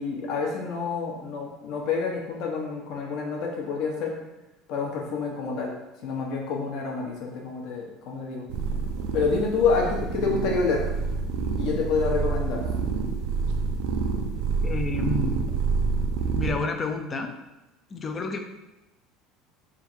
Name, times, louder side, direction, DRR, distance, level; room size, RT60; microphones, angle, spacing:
voice 1, 0.0-4.2 4.7-5.7 6.0-8.5 9.1-10.8 11.6-12.6, left 5 dB, 60° left, -1 dB, 1.1 m, -28 dB
sound 1, 8.5-16.5, right 4 dB, 75° right, 0.5 m, -27 dB
voice 2, 14.6-15.5 16.3-17.3 17.9-18.4, left 3 dB, 25° left, 6 dB, 0.4 m, -29 dB
3.6 x 2.7 x 4.5 m, 1.0 s
cardioid pair, 150°, 0 cm